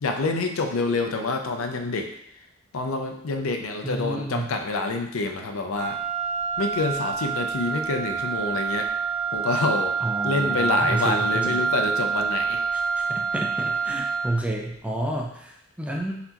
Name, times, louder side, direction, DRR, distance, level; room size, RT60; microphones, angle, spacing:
voice 1, 0.0-2.1 2.7-6.0 6.6-8.9 9.3-9.9 10.2-12.6 14.0-14.1, left 3 dB, 80° left, 4 dB, 0.6 m, -27 dB
voice 2, 3.8-4.5 10.0-11.6 12.7-16.2, right 1 dB, 5° right, 0 dB, 0.4 m, -30 dB
Wind instrument woodwind instrument, 5.7-14.5, right 6 dB, 50° right, 1.2 m, -27 dB
4.2 x 3.9 x 2.9 m, 0.73 s
head